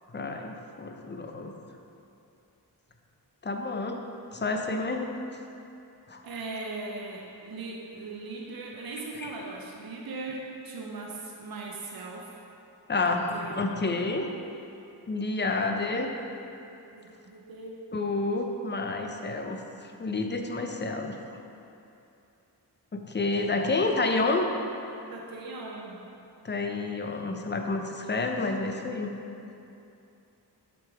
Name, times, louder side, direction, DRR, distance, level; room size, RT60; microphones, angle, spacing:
voice 1, 0.1-1.5 3.4-4.0 4.3-5.1 6.1-6.2 9.2-9.5 12.9-14.3 15.1-16.1 17.9-19.6 20.0-21.2 22.9-24.5 26.4-29.1, left 3 dB, 25° left, 3 dB, 0.5 m, -29 dB
voice 2, 6.2-12.4 13.1-14.0 16.9-17.8 25.1-26.0, right 3 dB, 60° right, -1 dB, 0.7 m, -39 dB
6.0 x 3.7 x 4.7 m, 2.7 s
cardioid pair, 55°, 41 cm